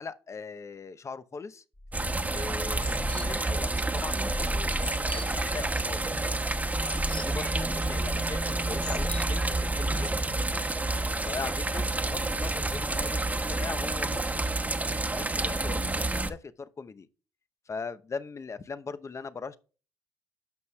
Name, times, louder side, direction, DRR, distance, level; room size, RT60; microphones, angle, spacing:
voice 1, 0.0-1.6 2.3-6.0 7.2-10.7 11.2-14.4 15.1-17.1 17.7-19.6, left 5 dB, 35° left, 0.8 m, -40 dB
sound 1, 1.8-9.7, left 1 dB, 15° left, 1.5 m, -38 dB
sound 2, 1.9-16.3, right 2 dB, 20° right, 1.2 m, -29 dB
13.0 x 5.5 x 2.3 m
hypercardioid pair, 60°, 9 cm